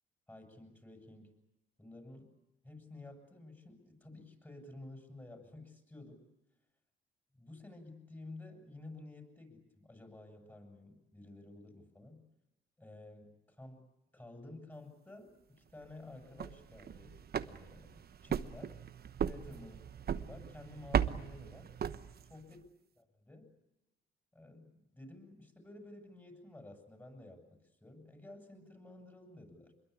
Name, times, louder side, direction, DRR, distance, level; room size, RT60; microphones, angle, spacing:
voice 1, 0.3-1.3 1.8-2.3 2.6-6.3 7.4-12.2 12.8-13.9 14.1-18.8 19.2-19.8 20.1-21.7 22.3-22.6 23.0-23.5 24.3-29.7, left 2 dB, 10° left, 4 dB, 7.9 m, -52 dB
sound 1, 16.2-22.5, right 8 dB, 50° right, 1.1 m, -37 dB
25.5 x 22.5 x 8.6 m, 0.92 s
cardioid pair, 90°, 20 cm